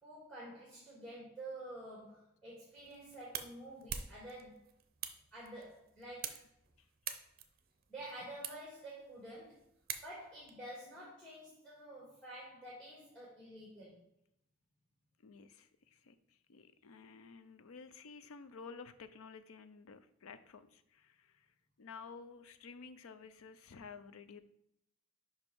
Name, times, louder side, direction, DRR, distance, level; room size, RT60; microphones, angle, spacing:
voice 1, 0.0-4.6 5.3-6.4 7.9-9.6 10.0-14.0, right 1 dB, 5° left, -6 dB, 1.7 m, -49 dB
sound 1, 2.7-10.5, right 8 dB, 45° right, 0.6 m, -47 dB
voice 2, 15.2-21.5 21.8-24.4, left 5 dB, 80° left, 12 dB, 0.5 m, -53 dB
5.5 x 5.2 x 4.5 m, 0.75 s
head